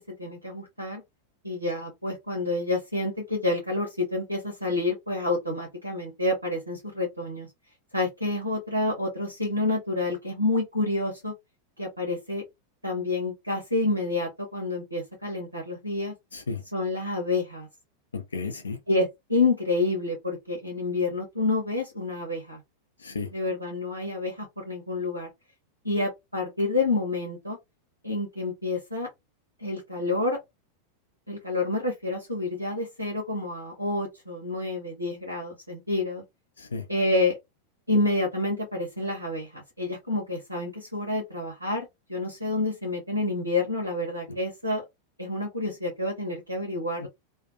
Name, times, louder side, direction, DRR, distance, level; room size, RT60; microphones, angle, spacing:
voice 1, 0.1-1.0 1.4-7.5 7.9-11.3 11.8-12.4 12.8-16.1 16.7-17.7 18.9-22.6 23.3-25.3 25.8-27.6 28.0-29.1 29.6-30.4 31.3-36.2 36.9-37.4 37.9-44.8 45.2-47.1, left 2 dB, 85° right, 0.8 m, -28 dB
voice 2, 16.3-16.6 18.1-18.8 23.0-23.3 36.6-36.8 44.3-44.4 47.0-47.1, left 4 dB, 70° left, 0.4 m, -33 dB
2.3 x 2.2 x 2.5 m
figure-of-eight pair, 90°, 0 cm